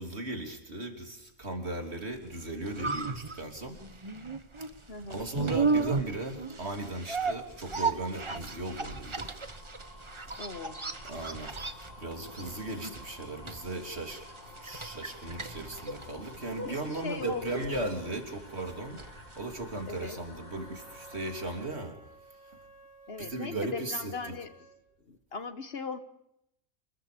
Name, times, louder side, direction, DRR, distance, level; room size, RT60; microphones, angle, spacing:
voice 1, 0.0-3.8 4.7-9.3 11.0-11.6 12.0-14.2 14.6-19.0 19.4-22.0 23.2-24.3, right 2 dB, 50° right, 4 dB, 3.5 m, -37 dB
sound 1, 2.3-20.3 20.6-20.7, right 4 dB, 25° right, 1.1 m, -35 dB
voice 2, 4.9-5.3 10.4-10.8 16.6-17.7 19.9-20.2 23.1-24.5 25.1-26.0, left 4 dB, 50° left, 11 dB, 1.5 m, -39 dB
sound 2, 6.3-21.7, left 1 dB, 80° left, 6.2 m, -52 dB
Wind instrument woodwind instrument, 20.3-24.8, right 3 dB, 25° left, 6.6 m, -55 dB
28.0 x 21.5 x 5.2 m, 0.79 s
omnidirectional pair, 1.4 m